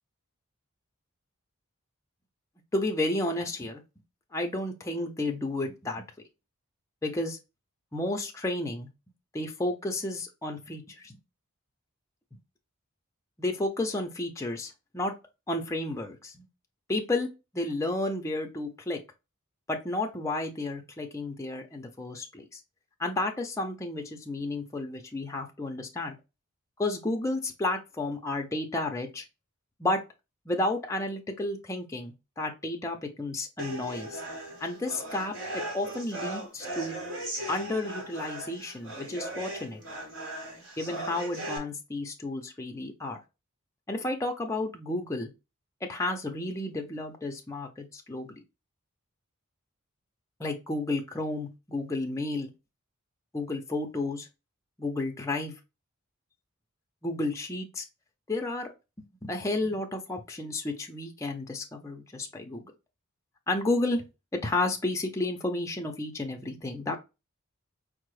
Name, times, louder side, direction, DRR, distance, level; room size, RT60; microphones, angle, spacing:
voice 1, 2.7-3.8 4.3-6.1 7.0-7.4 7.9-8.9 9.3-11.2 12.3-12.4 13.4-15.1 15.5-16.5 16.9-17.3 17.5-19.0 19.7-22.6 23.0-26.2 26.8-29.2 29.8-30.0 30.5-34.2 34.6-37.0 37.5-39.8 40.8-43.2 43.9-45.3 45.9-48.4 50.4-52.5 53.3-54.3 54.8-55.5 57.0-57.8 58.3-58.7 59.2-62.6 63.5-64.0 64.4-67.0, left 2 dB, 15° left, 0.4 m, -32 dB
sound 1, 33.6-41.6, right 1 dB, 60° right, 1.3 m, -38 dB
4.4 x 2.0 x 3.1 m
head